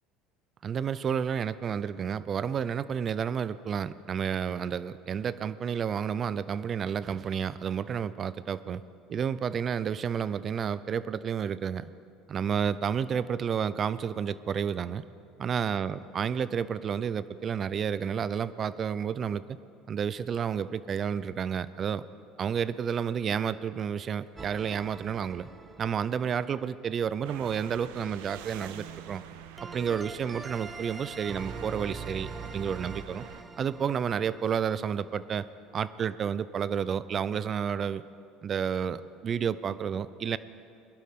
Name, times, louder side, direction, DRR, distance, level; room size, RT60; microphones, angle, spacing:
voice 1, 0.6-8.8 9.1-11.9 12.3-15.0 15.4-19.4 19.9-22.0 22.4-25.5 25.8-29.2 29.7-33.2 33.6-35.5 35.7-38.0 38.4-40.4, right 7 dB, 40° right, 16 dB, 0.5 m, -31 dB
sound 1, 24.4-26.5 29.6-35.2, right 4 dB, 20° right, 0.8 m, -43 dB
sound 2, 27.2-33.4, right 10 dB, 80° right, 0.6 m, -46 dB
21.5 x 11.5 x 3.7 m, 2.6 s
supercardioid pair, 90°, 0 cm